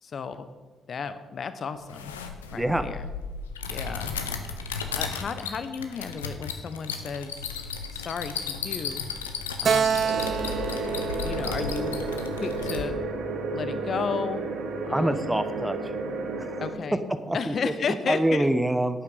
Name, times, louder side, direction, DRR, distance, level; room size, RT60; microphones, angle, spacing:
voice 1, 0.0-0.5 0.9-2.1 2.5-3.1 3.7-4.2 4.5-4.7 4.9-7.4 7.9-9.0 9.6-10.1 11.2-13.0 13.5-14.5 14.8-15.4 16.6-17.0 17.3-18.5, left 5 dB, 50° left, 11 dB, 1.0 m, -33 dB
sound 1, 1.8-12.8, left 5 dB, 90° left, 0.7 m, -35 dB
voice 2, 2.5-2.8 14.9-15.9 16.4-16.6 17.3-19.0, right 1 dB, 10° right, 10 dB, 1.0 m, -26 dB
Keyboard (musical), 9.6-13.1, right 7 dB, 55° right, 0.4 m, -29 dB
sound 2, 10.0-16.7, right 3 dB, 70° right, 1.6 m, -32 dB
11.5 x 8.5 x 5.5 m, 1.3 s
hypercardioid pair, 40°, 0 cm